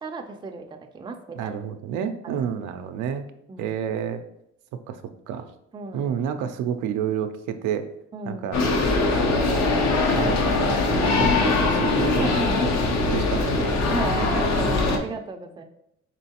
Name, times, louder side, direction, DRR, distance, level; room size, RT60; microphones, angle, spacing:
voice 1, 0.0-1.5 2.2-2.4 3.5-3.7 5.7-6.1 8.1-8.5 12.1-12.7 13.1-13.3 13.9-15.6, right 3 dB, 15° right, 4 dB, 0.4 m, -34 dB
voice 2, 1.4-3.3 3.6-4.2 4.9-5.5 5.9-7.9 8.3-8.6 9.1-9.7 10.1-12.7 13.1-13.7, right 8 dB, 90° right, 7 dB, 0.5 m, -30 dB
sound 1, 8.5-15.0, left 3 dB, 65° left, 0.7 m, -22 dB
4.5 x 3.1 x 2.8 m, 0.77 s
cardioid pair, 90°, 30 cm